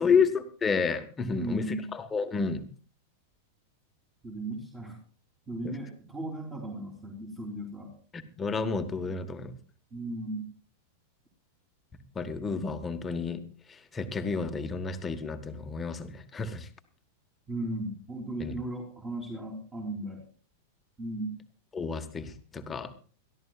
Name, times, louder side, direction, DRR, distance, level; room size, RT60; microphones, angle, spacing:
voice 1, 0.0-1.6 1.9-2.6 5.6-5.7 8.1-9.5 12.1-13.4 13.9-16.7 18.4-18.5 21.7-22.9, left 5 dB, 20° left, 7 dB, 1.3 m, -30 dB
voice 2, 1.3-1.9 4.2-5.0 5.5-7.9 9.9-10.5 17.5-20.2 21.0-21.4, right 1 dB, 20° right, -1 dB, 3.5 m, -36 dB
22.0 x 13.5 x 2.4 m, 0.39 s
figure-of-eight pair, 95°, 0 cm